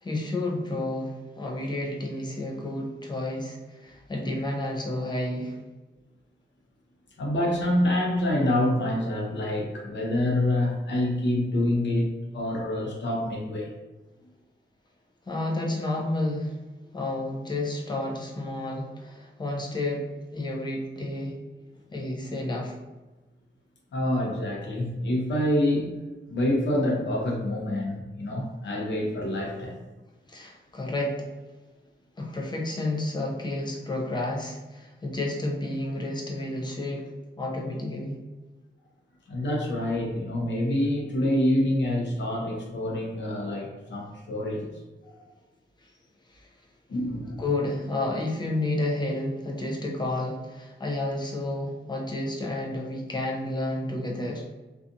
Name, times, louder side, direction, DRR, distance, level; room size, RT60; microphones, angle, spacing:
voice 1, 0.0-5.6 15.3-16.6 16.9-21.4 21.9-22.7 30.3-31.3 32.2-38.2 46.3-46.5 47.4-54.5, left 1 dB, 25° left, -1 dB, 0.5 m, -31 dB
voice 2, 7.2-12.1 12.3-13.7 23.9-25.9 26.3-29.8 39.3-44.7 45.2-45.3 46.9-47.4, left 1 dB, 70° left, -1 dB, 0.7 m, -26 dB
2.6 x 2.4 x 2.5 m, 1.2 s
wide cardioid pair, 170°, 19 cm